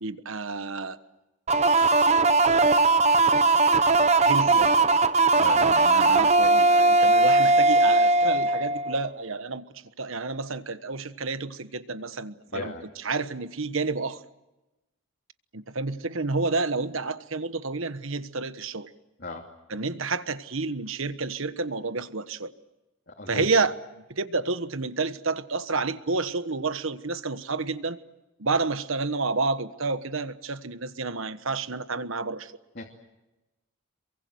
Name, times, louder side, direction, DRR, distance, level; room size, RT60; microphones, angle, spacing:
voice 1, 0.0-1.0 4.2-4.9 5.3-9.7 10.0-12.7 13.0-14.2 15.5-18.9 19.7-22.5 23.3-23.8 24.1-28.0 28.4-32.5, right 3 dB, 65° right, 12 dB, 1.3 m, -30 dB
sound 1, 1.5-9.1, right 3 dB, 30° right, 0.9 m, -19 dB
voice 2, 5.4-5.9 12.5-12.9 19.2-19.5 23.1-23.5 32.7-32.8, left 2 dB, 50° left, -1 dB, 2.8 m, -36 dB
27.5 x 23.5 x 7.9 m, 1.0 s
head